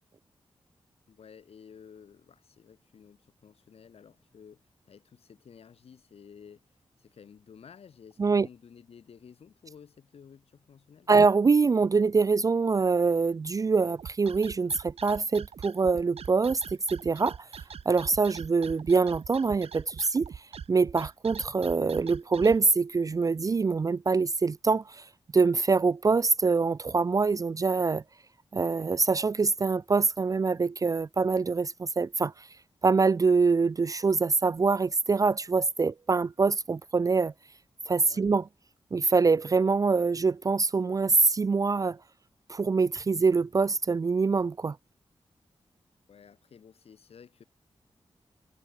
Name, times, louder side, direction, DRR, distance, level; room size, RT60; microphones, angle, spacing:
voice 1, 1.1-11.1 38.1-38.3 46.1-47.4, left 7 dB, 85° left, 4.5 m, -53 dB
voice 2, 11.1-16.6 16.9-17.4 17.9-20.3 20.7-25.0 25.3-28.0 28.5-32.5 32.8-37.3 37.9-38.5 38.9-42.0 42.5-44.8, right 4 dB, 35° right, 0.3 m, -24 dB
sound 1, 14.0-22.6, right 7 dB, 85° right, 3.4 m, -43 dB
cardioid pair, 65°, 10 cm